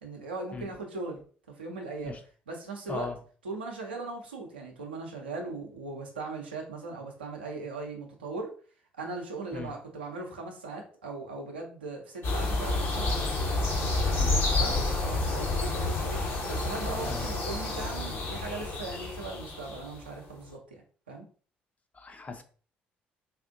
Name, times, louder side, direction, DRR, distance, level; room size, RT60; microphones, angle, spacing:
voice 1, 0.0-2.1 2.5-3.1 3.4-8.5 9.0-13.4 14.5-16.2 16.5-21.2, right 3 dB, 85° right, 0 dB, 0.7 m, -39 dB
sound 1, 12.2-20.0, left 2 dB, 50° left, 1.2 m, -29 dB
voice 2, 21.9-22.4, left 3 dB, 30° left, 5 dB, 0.7 m, -38 dB
4.1 x 2.5 x 2.6 m, 0.42 s
figure-of-eight pair, 50°, 5 cm